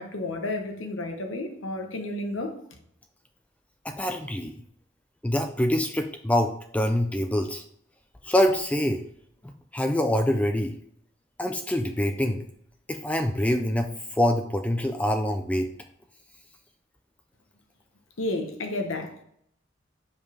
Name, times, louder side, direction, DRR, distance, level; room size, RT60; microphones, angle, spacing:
voice 1, 0.0-2.6 18.2-19.2, left 2 dB, 80° left, 4 dB, 1.1 m, -31 dB
voice 2, 3.8-4.5 5.2-7.6 8.2-9.0 9.7-10.7 11.4-12.4 12.9-15.7, left 1 dB, 5° left, 5 dB, 0.4 m, -25 dB
5.5 x 5.0 x 4.8 m, 0.69 s
head